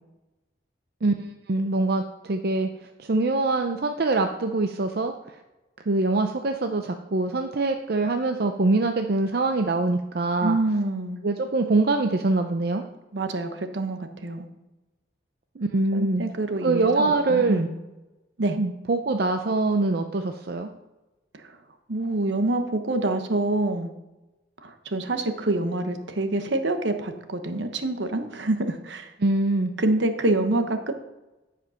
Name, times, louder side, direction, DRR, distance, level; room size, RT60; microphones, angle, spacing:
voice 1, 1.0-2.7 3.0-5.4 5.9-10.6 11.2-12.8 15.6-16.2 16.6-17.6 18.6-20.7 29.2-29.7, right 3 dB, 55° right, 5 dB, 0.5 m, -24 dB
voice 2, 10.4-11.2 13.1-14.5 15.9-17.7 18.4-18.6 21.4-21.5 21.9-23.9 24.6-29.1 29.8-30.9, right 2 dB, 75° right, 7 dB, 1.0 m, -26 dB
10.5 x 5.1 x 5.7 m, 1.1 s
head